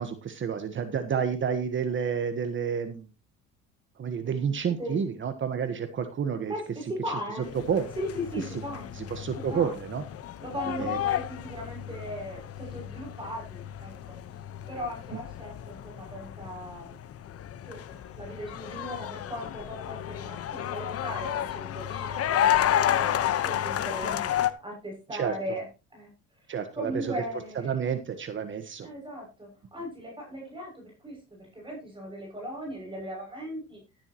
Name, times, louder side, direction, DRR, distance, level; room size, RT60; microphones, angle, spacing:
voice 1, 0.0-3.1 4.0-6.5 7.7-7.9 8.9-10.0 10.8-11.0 25.1-25.3 26.5-27.1 27.6-28.9, right 7 dB, 40° right, 9 dB, 1.4 m, -30 dB
voice 2, 6.5-7.5 8.0-8.9 9.5-9.7 10.4-13.9 14.7-17.0 17.6-24.3 24.6-25.7 25.9-26.1 26.5-27.7 28.8-33.8, equal, 15° right, 0 dB, 6.9 m, -38 dB
sound 1, 7.4-24.5, left 11 dB, 50° left, 1.2 m, -31 dB
13.0 x 12.0 x 3.0 m, 0.30 s
cardioid pair, 100°, 29 cm